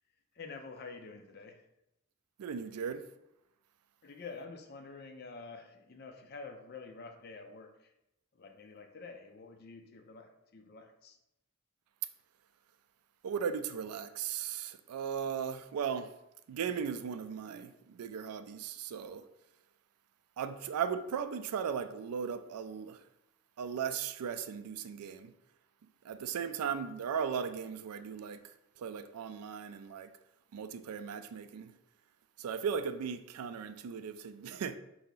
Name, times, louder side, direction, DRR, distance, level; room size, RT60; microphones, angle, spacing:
voice 1, 0.3-1.6 4.0-7.9 8.3-11.2, left 4 dB, 45° left, 0.5 m, -48 dB
voice 2, 2.4-3.0 13.2-16.1 16.5-19.2 20.4-23.0 23.6-25.3 26.0-30.1 30.5-31.7 32.4-34.8, right 7 dB, 90° right, 0.3 m, -37 dB
4.6 x 2.7 x 3.9 m
head